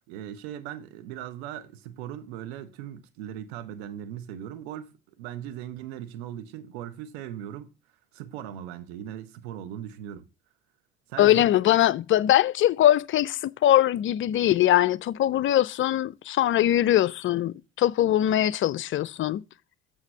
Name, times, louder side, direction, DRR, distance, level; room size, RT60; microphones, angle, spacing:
voice 1, 0.1-7.7 8.1-10.3 11.1-11.5, right 10 dB, 75° right, 1.0 m, -39 dB
voice 2, 11.2-19.4, left 12 dB, 40° left, 0.4 m, -22 dB
8.2 x 6.9 x 3.3 m
hypercardioid pair, 55°, 33 cm